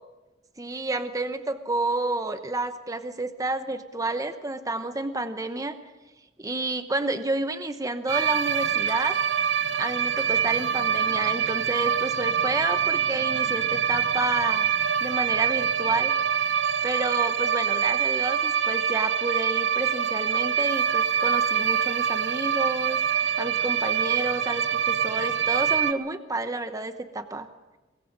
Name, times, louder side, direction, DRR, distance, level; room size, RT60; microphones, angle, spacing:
voice 1, 0.6-5.7 6.4-9.2 9.8-14.7 15.0-16.1 16.8-27.5, right 2 dB, 20° right, 9 dB, 1.0 m, -30 dB
sound 1, 8.1-25.9, right 8 dB, 70° right, 0.9 m, -25 dB
25.0 x 21.5 x 5.3 m, 1.1 s
head